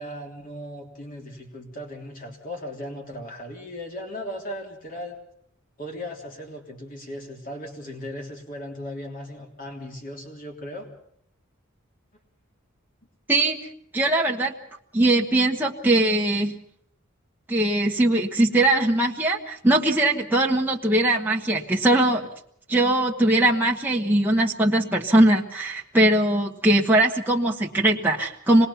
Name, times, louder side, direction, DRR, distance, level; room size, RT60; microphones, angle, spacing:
voice 1, 0.0-5.2 5.8-10.9, equal, 40° left, 1 dB, 3.4 m, -37 dB
voice 2, 13.3-14.5 14.9-16.5 17.5-22.3 22.7-28.7, right 1 dB, 10° right, -2 dB, 1.2 m, -21 dB
25.5 x 20.0 x 5.7 m, 0.69 s
head